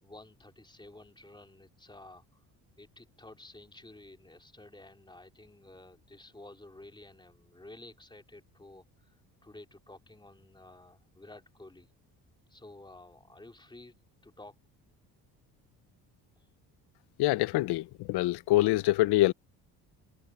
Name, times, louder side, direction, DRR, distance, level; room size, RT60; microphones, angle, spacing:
voice 1, 0.0-2.4 2.8-9.2 9.4-11.9 12.5-13.9 14.2-14.6 16.4-16.5, left 2 dB, 10° left, 3.2 m, -52 dB
voice 2, 17.2-19.3, left 17 dB, 75° left, 0.8 m, -25 dB
cardioid pair, 95°, 39 cm